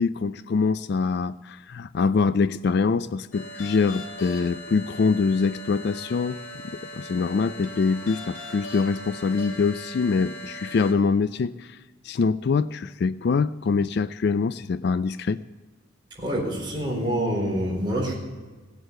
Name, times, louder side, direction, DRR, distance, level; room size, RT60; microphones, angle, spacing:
voice 1, 0.0-6.6 6.9-11.8 12.0-15.4, left 4 dB, 50° left, 15 dB, 0.3 m, -24 dB
sound 1, 3.3-10.9, left 1 dB, 75° left, 2.7 m, -39 dB
voice 2, 16.2-18.1, right 1 dB, 20° right, -2 dB, 4.1 m, -26 dB
17.5 x 7.9 x 6.6 m, 1.3 s
head